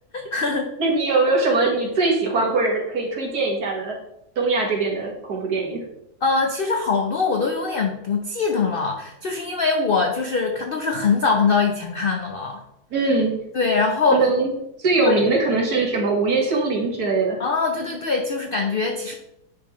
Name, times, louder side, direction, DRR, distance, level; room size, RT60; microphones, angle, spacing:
voice 1, 0.1-0.7 6.2-12.6 13.5-14.3 15.0-15.3 17.4-19.1, left 4 dB, 65° left, 2 dB, 0.5 m, -22 dB
voice 2, 0.8-4.0 4.4-5.8 12.9-13.4 14.1-14.5 14.8-17.4, right 3 dB, 65° right, -1 dB, 2.1 m, -21 dB
10.5 x 3.7 x 3.1 m, 0.82 s
omnidirectional pair, 1.8 m